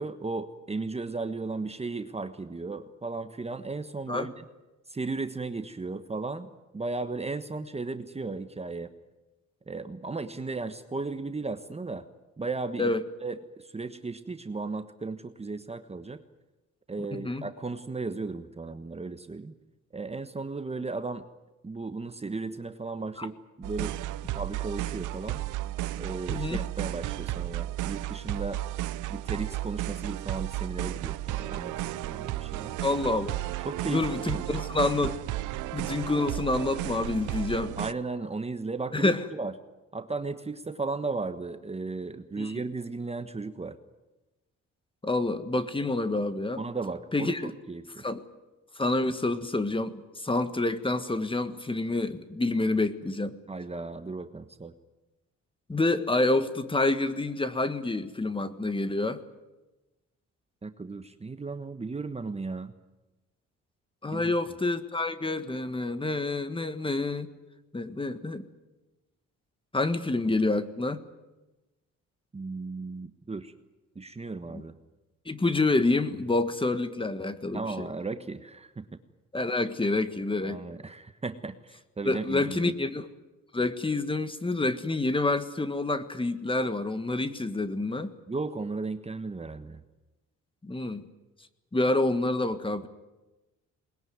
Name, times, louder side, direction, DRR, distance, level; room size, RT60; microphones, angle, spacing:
voice 1, 0.0-4.4 4.9-6.5 6.7-8.9 9.7-12.1 12.4-12.9 13.2-16.2 16.9-19.5 19.9-21.2 21.6-23.9 24.3-25.4 26.0-28.6 29.1-32.8 33.6-34.5 37.8-39.5 39.9-43.8 46.6-48.0 53.5-54.7 60.6-62.7 64.1-64.3 72.3-73.5 73.9-74.8 77.5-78.9 80.4-82.7 88.3-89.8, right 3 dB, 20° right, 9 dB, 1.2 m, -35 dB
voice 2, 17.1-17.5 23.2-23.3 26.3-26.6 32.8-33.4 33.9-35.2 35.7-37.8 38.9-39.2 42.4-42.5 45.0-46.6 47.1-47.5 48.0-48.2 48.7-53.4 55.7-59.2 64.0-67.3 67.7-68.4 69.7-71.0 74.5-74.6 75.2-77.9 79.3-80.6 82.0-83.1 83.5-88.1 90.6-91.0 91.7-92.9, left 2 dB, 15° left, 11 dB, 1.6 m, -28 dB
sound 1, 23.6-37.9, right 15 dB, 85° right, 0.7 m, -33 dB
21.5 x 20.5 x 9.5 m, 1.1 s
cardioid pair, 90°, 30 cm